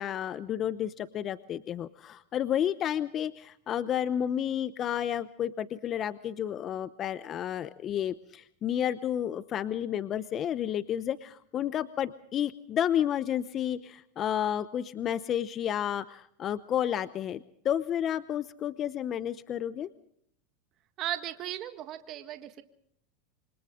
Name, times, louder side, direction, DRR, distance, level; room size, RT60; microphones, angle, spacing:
voice 1, 0.0-19.9, left 10 dB, 35° left, 14 dB, 0.8 m, -31 dB
voice 2, 21.0-22.6, right 12 dB, 45° right, 8 dB, 1.7 m, -36 dB
27.5 x 25.0 x 3.8 m, 0.69 s
supercardioid pair, 115°, 0 cm